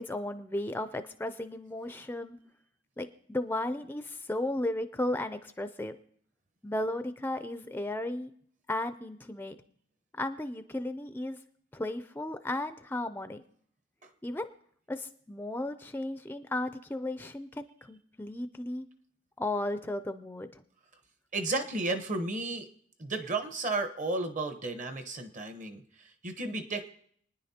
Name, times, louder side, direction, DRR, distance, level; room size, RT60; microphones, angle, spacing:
voice 1, 0.0-2.4 3.0-6.0 6.6-8.3 8.7-9.6 10.1-11.4 11.7-13.4 14.2-14.5 14.9-18.9 19.4-20.6, left 1 dB, 10° left, 9 dB, 0.4 m, -35 dB
voice 2, 21.3-22.7 23.0-26.9, right 2 dB, 40° right, 7 dB, 1.0 m, -33 dB
29.0 x 9.9 x 2.8 m, 0.64 s
head